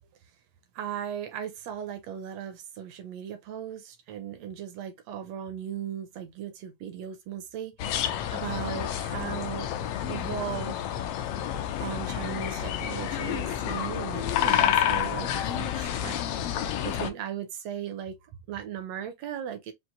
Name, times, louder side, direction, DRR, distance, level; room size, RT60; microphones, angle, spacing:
voice 1, 0.7-9.7 10.1-10.9 11.8-16.2 16.6-18.2 18.5-19.7, right 9 dB, 75° right, 1.6 m, -37 dB
sound 1, 7.8-17.1, left 10 dB, 80° left, 1.4 m, -29 dB
5.8 x 2.5 x 2.6 m
omnidirectional pair, 3.5 m